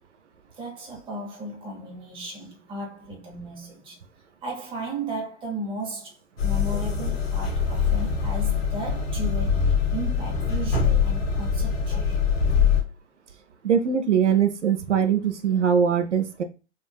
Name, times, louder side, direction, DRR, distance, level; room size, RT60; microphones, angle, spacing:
voice 1, 0.6-4.0 4.4-6.2 6.4-12.2, right 2 dB, 15° right, 0.9 m, -35 dB
sound 1, 6.4-12.8, left 6 dB, 55° left, 0.8 m, -23 dB
voice 2, 13.6-16.4, right 7 dB, 80° right, 0.5 m, -22 dB
3.5 x 2.4 x 2.2 m
figure-of-eight pair, 100°, 35 cm